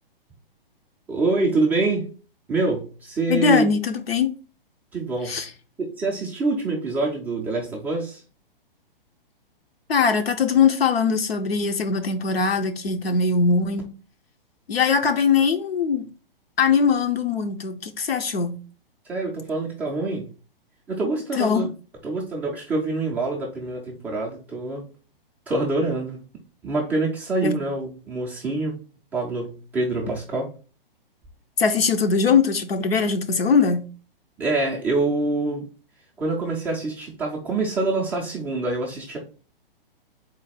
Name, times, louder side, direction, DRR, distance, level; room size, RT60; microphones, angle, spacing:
voice 1, 1.1-2.1 2.5-3.6 4.9-5.5 5.8-8.2 19.1-20.3 20.9-21.7 22.0-24.9 25.5-26.2 26.6-28.8 29.1-30.5 34.4-35.7 36.2-39.2, right 3 dB, 5° right, 0.3 m, -25 dB
voice 2, 3.3-4.3 5.3-5.5 9.9-13.9 14.7-16.0 16.6-18.6 21.4-21.7 27.4-27.6 31.6-33.8, left 5 dB, 90° left, 0.8 m, -21 dB
3.9 x 2.2 x 4.1 m
hypercardioid pair, 130°, 29 cm